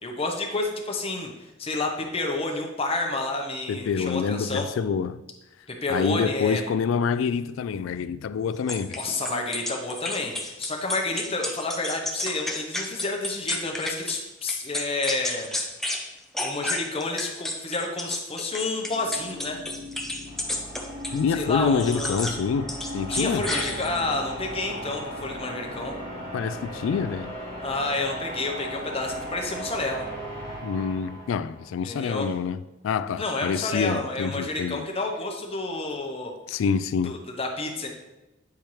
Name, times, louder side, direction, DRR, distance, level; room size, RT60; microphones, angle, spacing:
voice 1, 0.0-4.7 5.7-6.6 9.0-15.5 16.4-19.6 21.3-22.2 23.1-26.0 27.6-30.1 31.8-32.3 33.2-36.3 37.0-37.9, left 2 dB, 30° left, 0.9 m, -30 dB
voice 2, 3.7-5.2 5.9-9.0 21.1-22.7 22.9-23.5 26.3-27.3 30.6-34.9 36.5-37.1, left 6 dB, 85° left, 0.3 m, -26 dB
sound 1, 8.7-14.2 14.5-16.0 16.3-21.2 21.8-22.4 22.7-24.2, left 1 dB, ahead, 0.6 m, -31 dB
sound 2, 18.7-31.8, equal, 35° right, 2.3 m, -37 dB
8.5 x 4.4 x 3.2 m
head